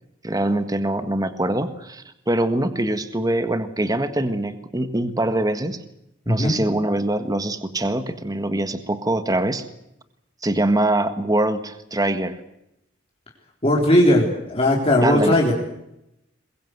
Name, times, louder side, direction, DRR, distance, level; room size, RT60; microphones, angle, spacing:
voice 1, 0.2-5.8 6.3-9.6 10.4-12.4 15.0-15.5, right 1 dB, 20° right, 10 dB, 1.6 m, -23 dB
voice 2, 13.6-15.5, left 1 dB, 30° left, -2 dB, 3.9 m, -18 dB
22.5 x 22.0 x 8.0 m, 0.83 s
head